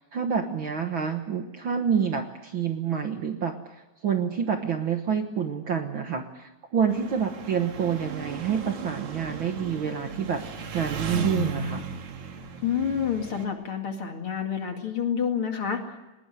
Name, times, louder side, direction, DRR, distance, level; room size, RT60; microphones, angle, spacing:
voice 1, 0.0-3.7 4.0-11.8, right 7 dB, 55° right, 5 dB, 1.7 m, -28 dB
Engine, 6.9-13.5, right 4 dB, 75° right, 3.2 m, -35 dB
voice 2, 12.6-15.8, left 7 dB, 50° left, 4 dB, 2.9 m, -28 dB
20.5 x 19.0 x 9.3 m, 1.0 s
omnidirectional pair, 3.4 m